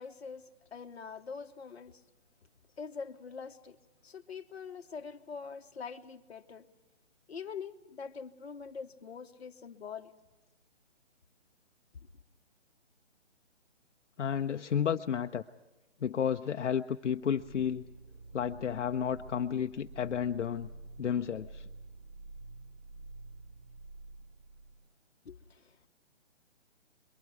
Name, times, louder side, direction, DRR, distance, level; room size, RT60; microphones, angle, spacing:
voice 1, 0.0-2.0 2.8-3.8 4.0-6.6 7.3-10.1 25.2-25.9, left 5 dB, 60° left, 1.3 m, -44 dB
voice 2, 14.2-15.4 16.0-17.8 18.3-20.7 21.0-21.7, left 8 dB, 75° left, 0.7 m, -32 dB
sound 1, 17.0-24.9, right 3 dB, 35° right, 4.8 m, -49 dB
29.0 x 23.0 x 4.8 m
hypercardioid pair, 170°, 36 cm